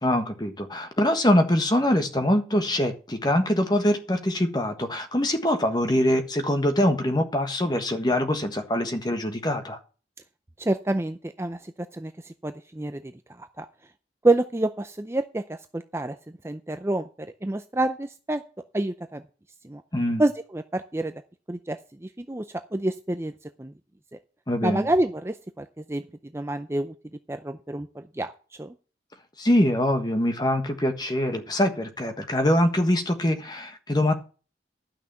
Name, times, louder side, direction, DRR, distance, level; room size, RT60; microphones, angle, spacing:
voice 1, 0.0-9.8 19.9-20.2 24.5-24.9 29.4-34.1, left 1 dB, 25° left, 1.4 m, -23 dB
voice 2, 10.6-13.1 13.4-13.7 14.2-16.2 16.4-18.4 18.7-19.2 19.6-19.8 20.2-21.1 21.5-23.3 23.6-23.7 24.6-26.0 26.3-26.9 27.3-28.3 28.6-28.7, right 2 dB, 15° right, 0.5 m, -28 dB
11.5 x 6.1 x 6.9 m
head